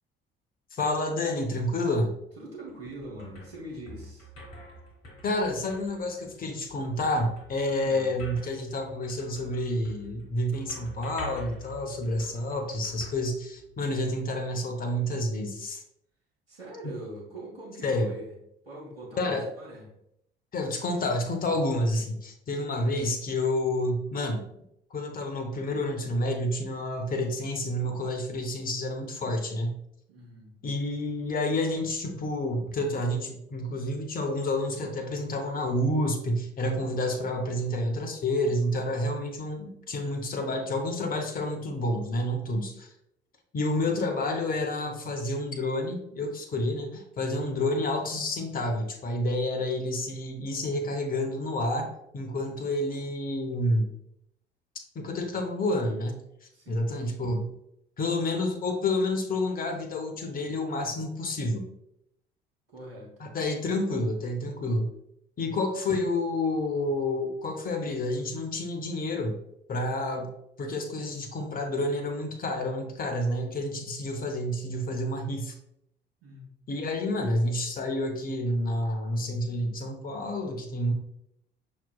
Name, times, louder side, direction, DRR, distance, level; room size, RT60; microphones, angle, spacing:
voice 1, 0.7-2.1 5.2-15.8 16.8-16.9 17.8-18.1 19.2-19.5 20.5-24.5 24.9-29.8 30.6-42.9 43.5-53.9 54.9-56.2 56.7-57.5 58.0-61.7 63.2-64.9 65.4-69.4 69.7-70.3 70.6-75.6 76.7-80.9, left 1 dB, 30° left, 5 dB, 0.8 m, -29 dB
voice 2, 2.4-4.3 7.6-8.1 16.5-18.3 18.6-19.9 30.1-30.6 43.8-43.9 56.5-56.9 62.7-63.3 76.2-76.5, right 1 dB, 85° right, -3 dB, 1.1 m, -43 dB
sound 1, 2.5-14.0, right 1 dB, 45° left, 1.3 m, -47 dB
5.8 x 3.1 x 2.3 m, 0.77 s
figure-of-eight pair, 50°, 29 cm